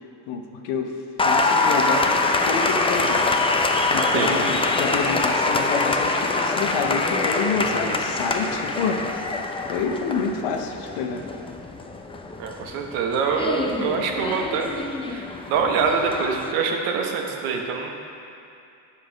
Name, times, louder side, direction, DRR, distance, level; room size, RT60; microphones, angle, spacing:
voice 1, 0.3-1.0 1.2-3.2 3.9-9.1 9.7-11.2, left 5 dB, 75° left, 4 dB, 1.0 m, -28 dB
Applause, 1.2-16.5, left 3 dB, 10° left, 0.5 m, -24 dB
voice 2, 12.4-14.7 15.1-17.9, right 5 dB, 80° right, 2 dB, 1.1 m, -25 dB
8.1 x 5.7 x 5.1 m, 2.7 s
supercardioid pair, 80°, 49 cm